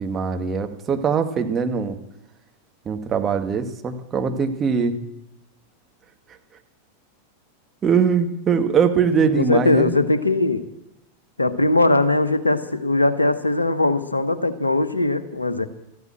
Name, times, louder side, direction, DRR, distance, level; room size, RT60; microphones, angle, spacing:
voice 1, 0.0-2.0 2.8-5.0 7.8-9.9, right 6 dB, 25° right, 5 dB, 1.7 m, -21 dB
voice 2, 9.2-10.7 11.4-15.7, left 2 dB, 80° left, 12 dB, 1.2 m, -20 dB
14.0 x 13.5 x 7.7 m, 0.88 s
figure-of-eight pair, 90°, 0 cm